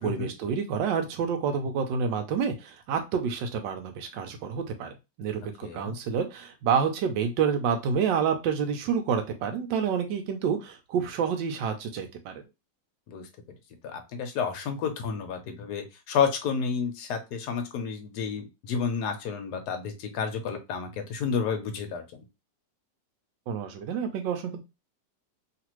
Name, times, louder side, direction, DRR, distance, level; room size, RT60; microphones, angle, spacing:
voice 1, 0.0-12.4 23.5-24.6, right 6 dB, 90° right, 5 dB, 1.3 m, -28 dB
voice 2, 5.6-6.0 13.1-13.3 13.8-22.0, left 6 dB, 70° left, 5 dB, 1.2 m, -30 dB
3.2 x 2.5 x 3.0 m, 0.25 s
omnidirectional pair, 1.9 m